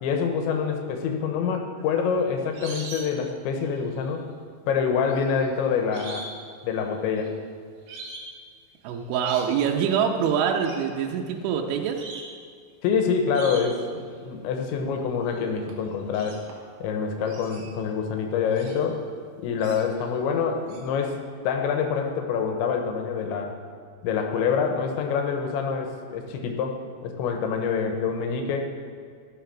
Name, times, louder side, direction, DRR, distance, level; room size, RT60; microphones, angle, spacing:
voice 1, 0.0-4.3 4.7-6.3 6.6-7.3 12.8-16.4 16.8-19.0 19.4-23.6 24.0-26.8 27.0-28.7, left 6 dB, 85° left, 4 dB, 3.3 m, -26 dB
sound 1, 1.8-3.3 3.6-4.1 5.1-6.4 6.7-7.3 7.9-8.3 8.9-9.5 10.6-10.9 11.5-11.6 12.0-12.4 13.3-13.9 15.3-15.4 15.7-16.8 17.2-18.9 19.6-20.1 20.7-20.8, right 3 dB, 60° right, 2.5 m, -42 dB
voice 2, 8.8-12.0, right 7 dB, 85° right, 2 dB, 3.2 m, -25 dB
14.5 x 7.0 x 5.9 m, 2.1 s
omnidirectional pair, 5.2 m